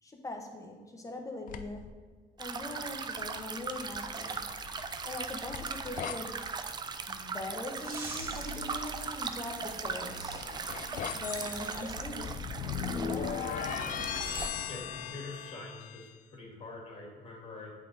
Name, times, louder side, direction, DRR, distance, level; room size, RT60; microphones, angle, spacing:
voice 1, 0.0-2.0 2.4-4.4 5.0-6.4 7.1-10.4 11.1-12.4 12.9-13.4, left 2 dB, 20° left, 2 dB, 0.9 m, -41 dB
sound 1, 1.5-1.9 3.8-6.2 9.7-16.1, left 8 dB, 50° left, 0.4 m, -38 dB
sound 2, 2.4-14.5, right 5 dB, 25° right, 0.4 m, -39 dB
sound 3, 7.6-12.1, right 1 dB, 60° right, 1.7 m, -46 dB
voice 2, 14.7-17.7, left 2 dB, 35° left, -2 dB, 2.0 m, -45 dB
8.2 x 3.6 x 4.0 m, 1.5 s
cardioid pair, 110°, 17 cm